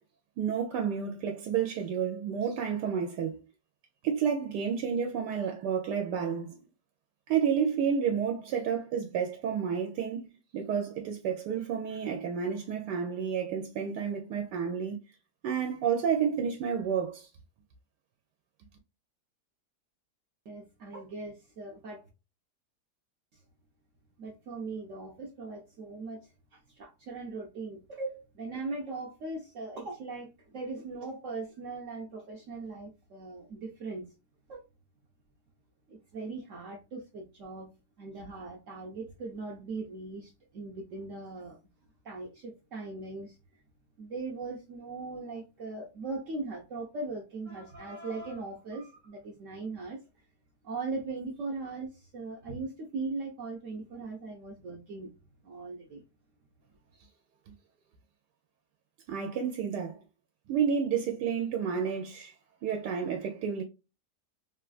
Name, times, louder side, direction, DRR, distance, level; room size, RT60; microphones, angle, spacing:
voice 1, 0.4-3.4 4.0-6.6 7.3-10.3 10.5-15.0 15.4-17.3 59.1-60.0 60.5-62.3 62.6-63.6, right 7 dB, 85° right, 1.2 m, -30 dB
voice 2, 20.5-22.0 24.2-26.3 26.8-34.1 34.5-34.6 35.9-37.7 38.0-41.6 42.0-43.4 44.0-50.0 50.6-55.1 55.4-56.0, right 3 dB, 65° right, 0.8 m, -39 dB
3.2 x 2.3 x 2.3 m
omnidirectional pair, 1.8 m